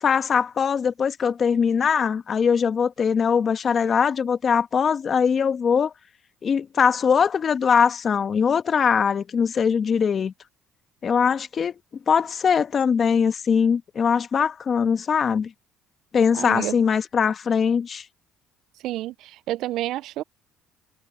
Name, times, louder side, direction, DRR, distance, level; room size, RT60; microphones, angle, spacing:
voice 1, 0.0-5.9 6.4-10.3 11.0-11.7 12.1-15.5 16.1-18.0, left 6 dB, 45° left, 1.3 m, -21 dB
voice 2, 16.3-16.8 18.8-20.2, right 15 dB, 70° right, 0.4 m, -29 dB
supercardioid pair, 80°, 0 cm